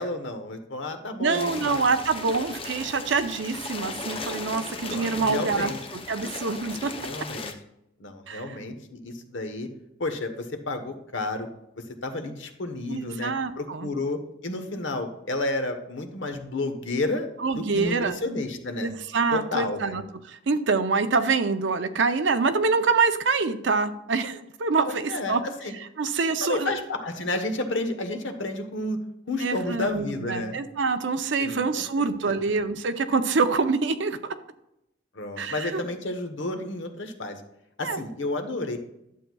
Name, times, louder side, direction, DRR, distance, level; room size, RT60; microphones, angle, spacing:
voice 1, 0.0-1.8 4.8-5.8 6.9-7.5 8.0-9.7 10.0-11.5 11.8-18.9 19.3-20.0 24.8-25.7 26.4-29.0 29.3-30.6 31.4-32.4 35.1-37.4 37.8-38.8, left 2 dB, 80° left, 6 dB, 1.1 m, -31 dB
voice 2, 1.2-5.7 6.1-6.9 8.3-8.4 12.9-13.9 17.4-18.2 18.8-25.4 26.0-26.7 29.4-34.2 35.4-35.8 37.8-38.0, right 4 dB, 70° right, 9 dB, 0.6 m, -25 dB
sound 1, 1.3-7.5, left 3 dB, 30° left, 0.7 m, -37 dB
11.0 x 7.7 x 2.3 m, 0.83 s
head